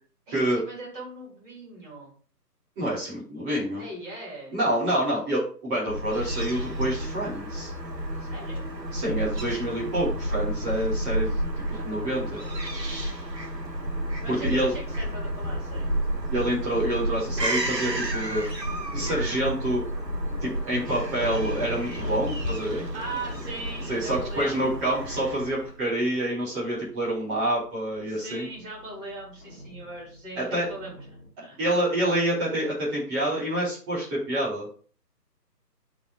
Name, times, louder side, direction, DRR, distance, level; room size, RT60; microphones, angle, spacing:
voice 1, 0.3-2.1 3.8-4.6 8.2-8.7 11.7-12.6 14.2-15.9 22.8-24.8 28.0-31.6, right 2 dB, 30° right, -3 dB, 3.5 m, -40 dB
voice 2, 2.8-3.9 4.5-7.7 8.9-11.4 11.7-12.4 14.3-14.7 16.3-18.5 18.9-19.8 20.4-22.8 23.9-28.5 30.4-30.7 31.6-34.7, right 1 dB, 10° right, -7 dB, 1.4 m, -27 dB
Fowl / Gull seagull, 5.9-25.8, right 1 dB, 85° right, 1.3 m, -31 dB
sound 1, 21.1-24.5 25.0-25.6 26.1-26.5 27.9-31.3, equal, 20° left, 1.7 m, -39 dB
10.0 x 4.1 x 2.5 m, 0.43 s
figure-of-eight pair, 150°, 48 cm